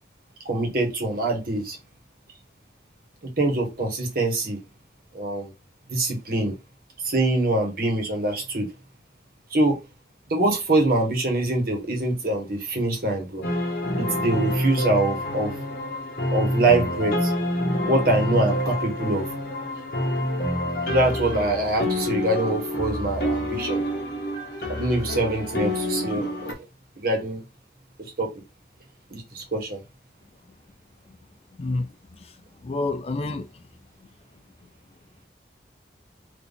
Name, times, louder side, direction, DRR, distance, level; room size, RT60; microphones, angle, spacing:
voice 1, 0.4-1.8 3.2-4.6 5.1-5.5 5.9-6.5 7.0-8.7 9.5-9.8 10.3-13.4 14.0-15.5 16.3-17.3 17.9-19.3 20.9-23.8 24.7-26.5 27.0-27.4 28.2-28.3 29.1-29.8, right 2 dB, 50° right, 1.5 m, -24 dB
sound 1, 13.4-26.5, left 1 dB, 55° left, 1.4 m, -27 dB
voice 2, 31.6-32.3 32.6-33.5, left 2 dB, 35° left, 0.4 m, -29 dB
4.0 x 2.9 x 3.6 m
head